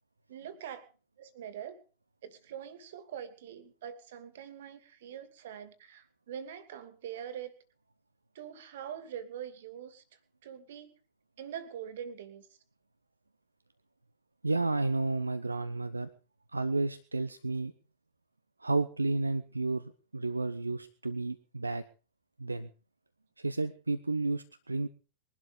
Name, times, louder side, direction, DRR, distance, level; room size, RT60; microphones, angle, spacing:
voice 1, 0.3-0.9 1.2-1.8 2.2-7.5 8.3-10.0 10.4-10.9 11.4-12.5, right 9 dB, 60° right, 13 dB, 2.6 m, -43 dB
voice 2, 14.4-16.1 16.5-17.7 18.6-21.8 22.4-22.7 23.4-24.9, right 3 dB, 80° right, 12 dB, 1.0 m, -31 dB
22.0 x 12.5 x 5.2 m, 0.37 s
figure-of-eight pair, 90°, 0 cm